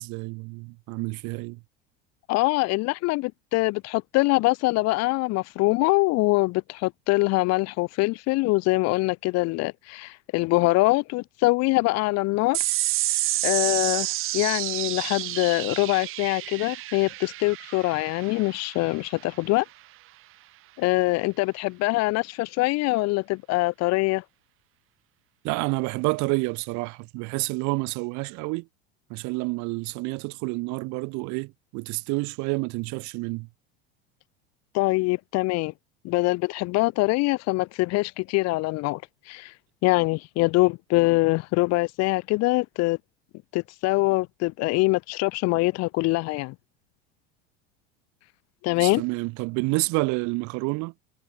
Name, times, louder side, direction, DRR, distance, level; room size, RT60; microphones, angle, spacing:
voice 1, 0.0-1.6 25.4-28.7 29.1-33.5 48.8-50.9, right 27 dB, 65° right, 3.4 m, -29 dB
voice 2, 2.3-12.6 13.4-14.1 14.3-19.6 20.8-24.2 34.7-35.7 36.0-39.0 39.3-39.5 39.8-43.0 43.5-46.5 48.6-49.0, left 22 dB, 55° left, 0.8 m, -24 dB
sound 1, 12.5-19.3, right 17 dB, 45° right, 0.6 m, -29 dB
hypercardioid pair, 95°, 31 cm